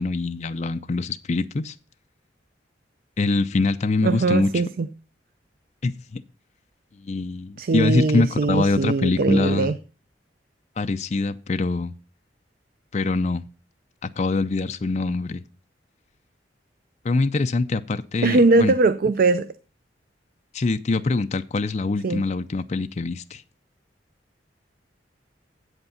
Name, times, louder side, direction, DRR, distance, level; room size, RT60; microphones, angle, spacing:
voice 1, 0.0-1.7 3.2-4.5 5.8-6.2 7.0-9.7 10.8-12.0 12.9-13.4 14.2-15.4 17.0-18.7 20.5-23.4, left 3 dB, 40° left, 0.5 m, -24 dB
voice 2, 4.0-4.9 7.6-9.8 18.2-19.5 22.0-22.2, right 3 dB, 55° right, 0.4 m, -20 dB
8.1 x 8.0 x 5.6 m
head